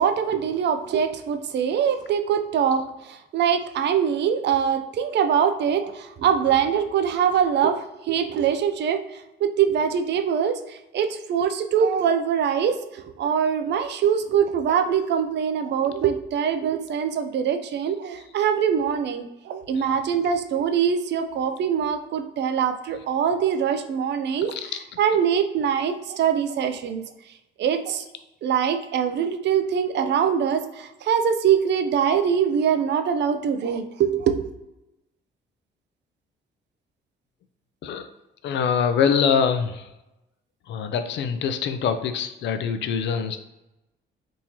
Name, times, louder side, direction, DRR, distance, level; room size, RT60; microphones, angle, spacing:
voice 1, 0.0-2.8 3.1-9.0 9.4-12.8 13.2-24.5 25.0-27.0 27.6-28.0 28.4-34.5, right 8 dB, 60° right, 8 dB, 0.4 m, -23 dB
voice 2, 38.4-39.8 40.7-43.4, left 7 dB, 65° left, 9 dB, 0.4 m, -24 dB
3.6 x 2.8 x 2.9 m, 0.95 s
cardioid pair, 90°, 20 cm